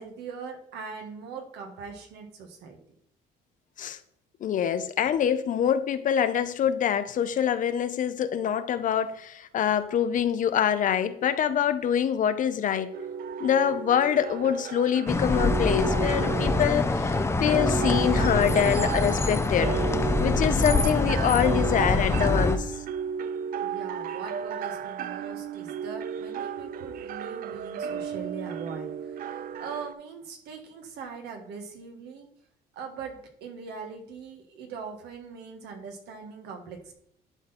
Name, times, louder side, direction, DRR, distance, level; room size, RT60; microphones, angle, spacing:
voice 1, 0.0-2.8 23.6-32.3 32.7-36.9, right 5 dB, 80° right, 1.6 m, -41 dB
voice 2, 4.4-12.9 13.4-19.8 20.2-22.7, left 9 dB, 50° left, 0.7 m, -25 dB
sound 1, 12.9-29.9, right 7 dB, 55° right, 0.5 m, -34 dB
sound 2, 15.1-22.6, left 2 dB, 15° left, 0.6 m, -25 dB
11.0 x 4.0 x 4.3 m
cardioid pair, 110°, 17 cm